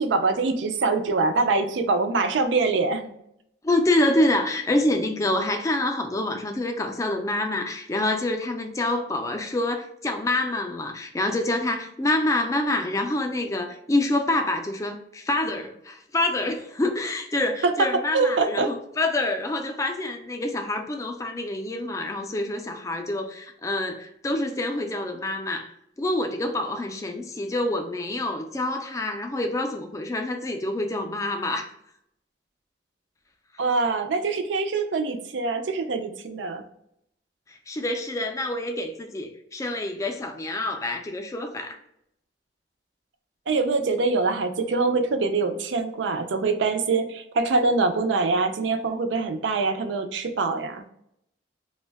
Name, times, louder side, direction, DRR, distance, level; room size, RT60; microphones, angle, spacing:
voice 1, 0.0-3.1 17.6-18.7 33.6-36.6 43.5-50.8, right 3 dB, 80° right, 0.4 m, -24 dB
voice 2, 3.6-31.7 37.5-41.8, left 1 dB, 15° left, 0.3 m, -27 dB
2.6 x 2.1 x 3.3 m
head